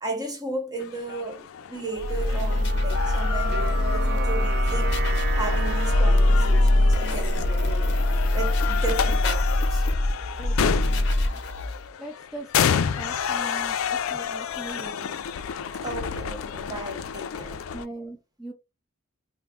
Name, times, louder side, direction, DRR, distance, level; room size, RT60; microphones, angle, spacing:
voice 1, 0.0-5.0 5.3-7.9 8.3-9.9 15.8-17.6, right 2 dB, 20° right, 1.0 m, -34 dB
sound 1, 0.8-17.9, left 8 dB, 75° left, 0.4 m, -31 dB
sound 2, 2.0-11.9, left 1 dB, 55° left, 0.8 m, -23 dB
sound 3, 2.3-9.2, right 6 dB, 50° right, 0.5 m, -35 dB
voice 2, 10.4-11.4 12.0-15.2 17.7-18.5, right 2 dB, ahead, 0.5 m, -40 dB
3.5 x 2.0 x 3.5 m
head